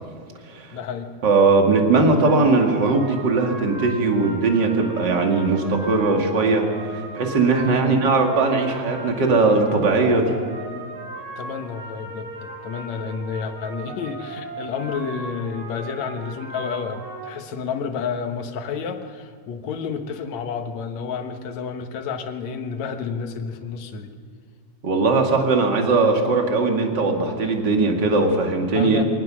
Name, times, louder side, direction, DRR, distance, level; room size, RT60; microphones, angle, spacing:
voice 1, 0.7-1.1 7.6-7.9 11.4-24.1 28.7-29.0, left 6 dB, 70° left, 5 dB, 2.6 m, -30 dB
voice 2, 1.2-10.4 24.8-29.0, right 3 dB, 40° right, 2 dB, 2.7 m, -19 dB
sound 1, 2.2-17.3, right 2 dB, 75° right, 6.8 m, -37 dB
24.5 x 19.0 x 6.3 m, 2.2 s
omnidirectional pair, 3.3 m